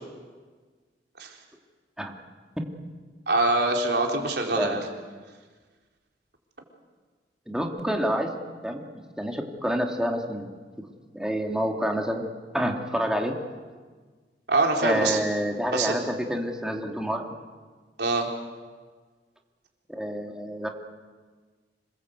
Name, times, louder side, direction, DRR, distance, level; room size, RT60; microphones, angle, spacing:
voice 1, 3.3-4.8 14.5-15.2 15.7-16.0 18.0-18.3, right 2 dB, 70° right, 1 dB, 4.1 m, -24 dB
voice 2, 7.5-8.3 8.6-8.8 9.2-10.5 11.1-12.3 12.5-13.4 14.8-17.3 19.9-20.7, equal, 5° right, 1 dB, 2.5 m, -28 dB
27.0 x 20.5 x 8.2 m, 1.5 s
head